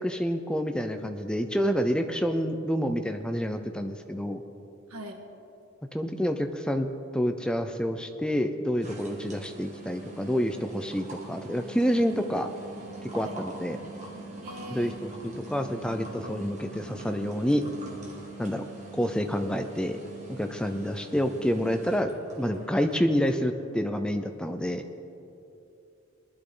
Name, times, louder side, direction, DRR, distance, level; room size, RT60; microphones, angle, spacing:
voice 1, 0.0-4.4 5.9-6.9 7.1-12.5 13.1-13.8 14.7-14.9 15.5-17.7 18.4-18.6 18.9-20.0 20.3-24.8, equal, 5° left, 7 dB, 0.5 m, -28 dB
voice 2, 4.9-5.2 13.2-13.4 14.4-15.1, equal, 90° right, 3 dB, 1.7 m, -42 dB
sound 1, 8.8-23.5, right 2 dB, 35° right, 1.8 m, -43 dB
20.0 x 12.0 x 3.8 m, 2.8 s
head